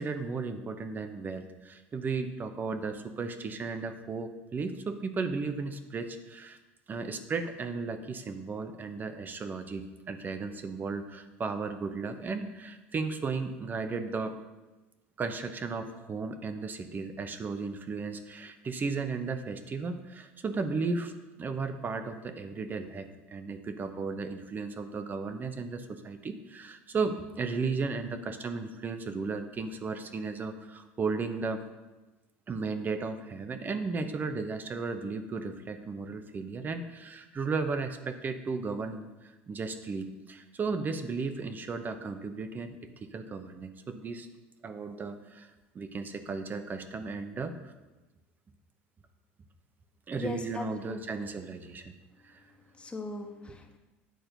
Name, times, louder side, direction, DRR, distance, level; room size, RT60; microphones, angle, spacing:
voice 1, 0.0-6.6 6.9-14.4 15.2-21.1 21.4-31.6 32.5-44.3 44.6-47.6 50.1-51.9 52.2-52.4 53.5-53.6, right 4 dB, 30° right, 9 dB, 0.9 m, -35 dB
voice 2, 50.1-51.2 52.8-53.8, left 2 dB, 20° left, 2 dB, 1.4 m, -39 dB
9.2 x 4.3 x 6.7 m, 1.1 s
hypercardioid pair, 80°, 6 cm